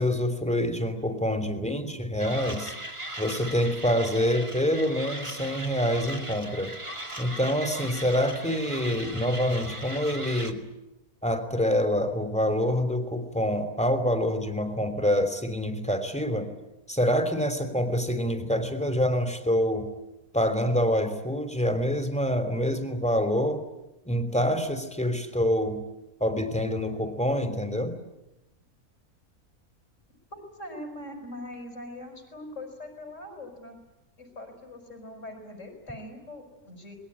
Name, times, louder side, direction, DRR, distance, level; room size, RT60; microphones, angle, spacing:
voice 1, 0.0-2.7 3.2-6.7 7.2-10.6 11.2-16.5 16.9-19.9 20.3-23.6 24.0-25.8 26.2-27.9, equal, 5° left, 8 dB, 3.1 m, -26 dB
Mechanisms, 2.2-10.5, right 1 dB, 20° right, 2.4 m, -38 dB
voice 2, 30.3-33.8 34.2-37.0, left 1 dB, 55° left, 5 dB, 5.8 m, -42 dB
26.5 x 21.0 x 9.9 m, 0.95 s
omnidirectional pair, 1.5 m